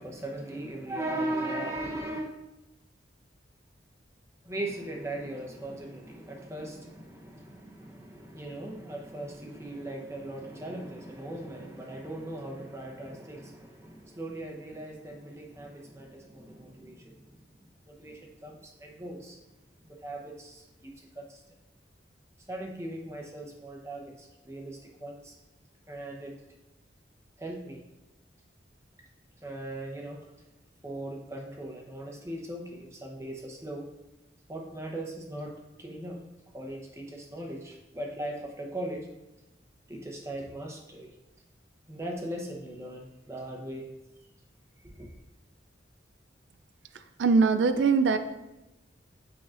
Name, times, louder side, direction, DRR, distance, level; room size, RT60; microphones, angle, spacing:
voice 1, 0.0-2.3 4.4-17.4 17.9-19.4 19.8-21.4 22.5-25.4 25.9-26.4 27.4-27.8 29.4-30.2 30.8-33.9 34.5-36.2 36.5-39.1 39.9-41.1 41.9-43.9 44.8-45.1, right 1 dB, 15° right, 0 dB, 0.8 m, -39 dB
voice 2, 47.2-48.2, right 4 dB, 75° right, 9 dB, 0.4 m, -21 dB
8.7 x 4.7 x 2.5 m, 1.0 s
head